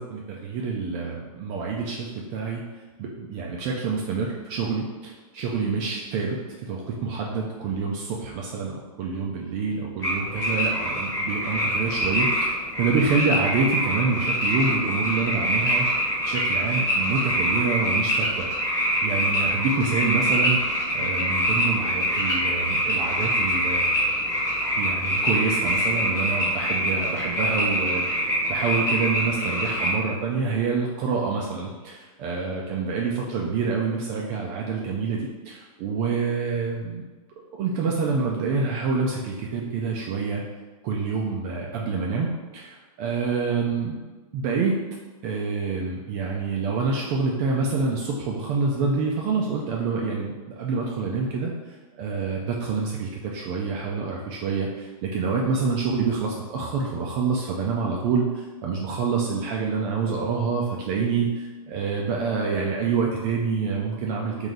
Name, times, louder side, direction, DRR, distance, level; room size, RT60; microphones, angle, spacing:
voice 1, 0.0-2.6 3.0-18.5 19.0-24.0 24.8-28.1 28.5-37.0 37.5-40.4 40.8-42.3 42.5-44.0 44.3-44.8 45.2-64.5, right 4 dB, 35° right, -1 dB, 0.4 m, -27 dB
sound 1, 10.0-29.9, equal, 15° left, 1.2 m, -25 dB
3.2 x 2.7 x 3.8 m, 1.3 s
hypercardioid pair, 145°, 19 cm